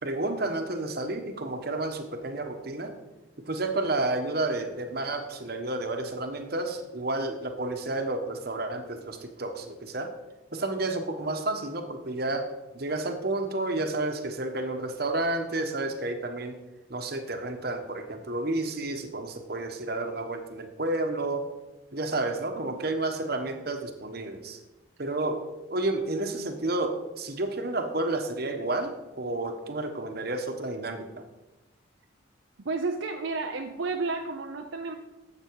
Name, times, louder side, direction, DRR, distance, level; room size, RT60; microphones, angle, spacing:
voice 1, 0.0-2.9 3.5-10.1 10.5-12.5 12.7-16.6 16.9-21.5 21.9-24.6 25.0-31.2, right 2 dB, 50° right, 6 dB, 1.2 m, -31 dB
voice 2, 32.6-34.9, right 3 dB, 75° right, 4 dB, 0.7 m, -32 dB
12.0 x 7.9 x 4.7 m, 1.1 s
head